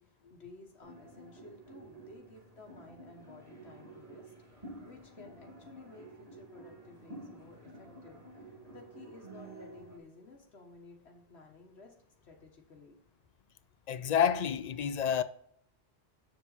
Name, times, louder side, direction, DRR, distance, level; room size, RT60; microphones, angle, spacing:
voice 1, 0.0-11.9 12.2-12.9, left 3 dB, 85° left, 1.6 m, -55 dB
sound 1, 0.8-10.0, right 2 dB, 35° right, 2.2 m, -51 dB
voice 2, 13.9-15.2, left 8 dB, 55° left, 0.5 m, -29 dB
7.5 x 7.2 x 4.0 m
omnidirectional pair, 1.1 m